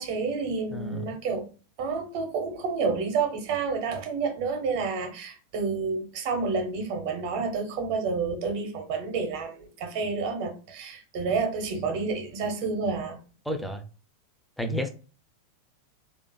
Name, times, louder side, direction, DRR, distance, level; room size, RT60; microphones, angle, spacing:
voice 1, 0.0-1.4 1.8-13.2, right 4 dB, 45° right, 4 dB, 0.6 m, -29 dB
voice 2, 0.7-1.0 13.5-13.8 14.6-14.9, equal, ahead, 5 dB, 0.4 m, -30 dB
2.4 x 2.3 x 2.2 m, 0.35 s
figure-of-eight pair, 90°, 0 cm